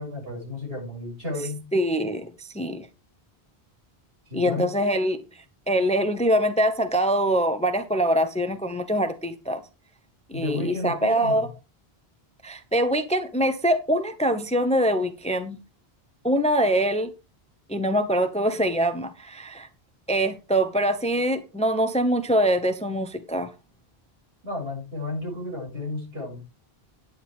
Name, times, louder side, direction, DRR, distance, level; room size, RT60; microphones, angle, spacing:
voice 1, 0.0-1.6 4.3-4.7 10.3-11.5 24.4-26.4, left 2 dB, 70° right, 7.6 m, -32 dB
voice 2, 1.7-2.9 4.3-5.2 5.7-9.6 10.3-11.5 12.4-15.6 16.2-17.1 17.7-19.7 20.1-23.5, equal, 5° left, 0.9 m, -24 dB
11.0 x 9.8 x 3.6 m
omnidirectional pair, 1.1 m